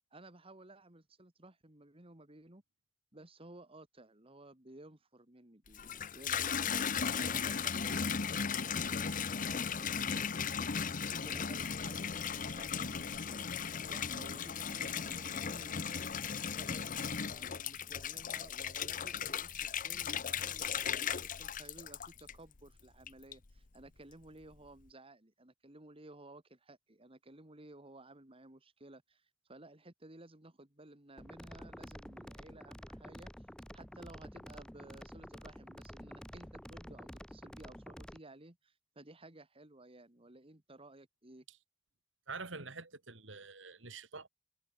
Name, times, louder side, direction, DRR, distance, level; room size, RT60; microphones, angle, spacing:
voice 1, 0.1-2.6 3.1-33.5 33.7-41.5, right 2 dB, 30° right, 2.3 m, -56 dB
Water tap faucet / Bathtub (filling or washing), 5.7-22.6 23.1-23.6, left 7 dB, 45° left, 0.8 m, -36 dB
sound 1, 31.2-38.2, equal, 5° left, 3.4 m, -50 dB
voice 2, 42.3-44.3, right 4 dB, 70° right, 3.4 m, -46 dB
head